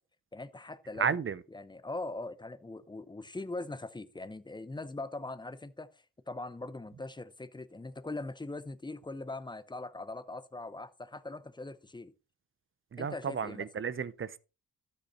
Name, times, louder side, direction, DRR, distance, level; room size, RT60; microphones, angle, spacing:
voice 1, 0.3-1.2 1.5-5.9 6.3-12.1 13.0-13.7, left 2 dB, 15° left, 0.7 m, -41 dB
voice 2, 1.0-1.4 12.9-14.4, right 7 dB, 35° right, 0.7 m, -33 dB
13.0 x 5.6 x 4.3 m
cardioid pair, 115°, 35 cm